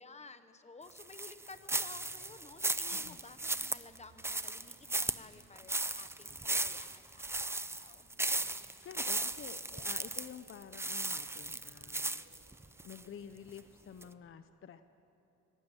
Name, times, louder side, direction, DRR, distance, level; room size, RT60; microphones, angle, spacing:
voice 1, 0.0-8.1, left 3 dB, 20° left, 10 dB, 0.9 m, -54 dB
sound 1, 1.0-13.0 13.5-13.6 14.0-14.1, right 2 dB, 10° right, 0.4 m, -36 dB
sound 2, 1.4-14.1, right 2 dB, 45° right, 4.6 m, -65 dB
voice 2, 8.8-12.2 12.8-14.8, left 8 dB, 45° left, 10 dB, 0.6 m, -50 dB
23.5 x 18.0 x 9.0 m, 3.0 s
wide cardioid pair, 175°, 31 cm